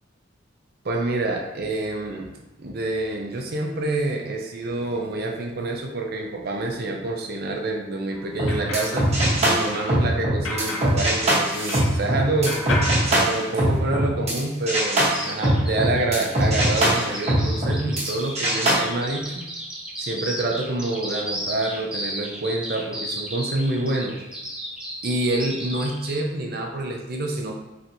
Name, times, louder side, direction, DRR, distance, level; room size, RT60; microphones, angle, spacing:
voice 1, 0.8-2.3 2.6-9.1 9.4-12.6 13.1-19.5 20.0-24.1 25.0-27.5, right 2 dB, 50° right, 2 dB, 0.6 m, -27 dB
sound 1, 8.1-12.1 12.5-13.9, left 1 dB, 75° left, 0.7 m, -33 dB
sound 2, 8.3-14.4 14.7-18.1 18.4-18.7, right 1 dB, 35° right, 1.1 m, -22 dB
Bird vocalization bird call bird song, 15.0-26.2, right 1 dB, 5° right, 0.6 m, -34 dB
4.3 x 3.2 x 2.7 m, 1.0 s
head